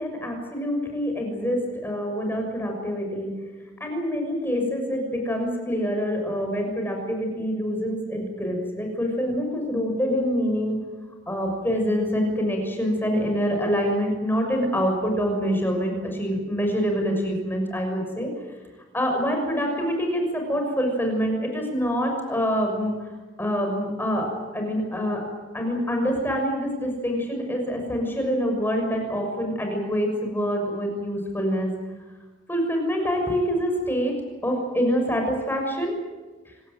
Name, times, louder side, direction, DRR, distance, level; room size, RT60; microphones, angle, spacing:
voice 1, 0.0-3.3 3.8-10.8 11.3-18.3 18.9-22.9 23.4-24.3 24.5-25.2 25.5-31.7 32.5-34.2 34.4-36.0 36.4-36.5, equal, 10° left, 3 dB, 6.4 m, -26 dB
26.5 x 18.5 x 9.3 m, 1.2 s
head